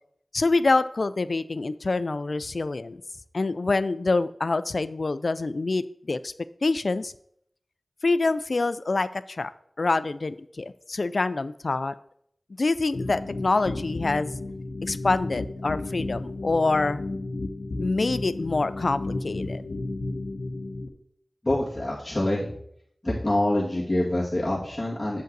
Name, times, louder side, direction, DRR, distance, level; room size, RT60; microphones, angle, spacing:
voice 1, 0.3-3.0 3.3-6.3 6.6-7.1 8.0-9.5 9.8-11.9 12.6-14.4 14.8-17.0 17.8-19.6, left 3 dB, 70° left, 15 dB, 0.3 m, -26 dB
sound 1, 12.9-20.9, left 2 dB, 85° left, 0.7 m, -33 dB
voice 2, 21.4-22.5 23.0-25.2, left 1 dB, 25° left, -8 dB, 2.1 m, -26 dB
7.7 x 5.2 x 3.9 m, 0.69 s
wide cardioid pair, 50°, 0 cm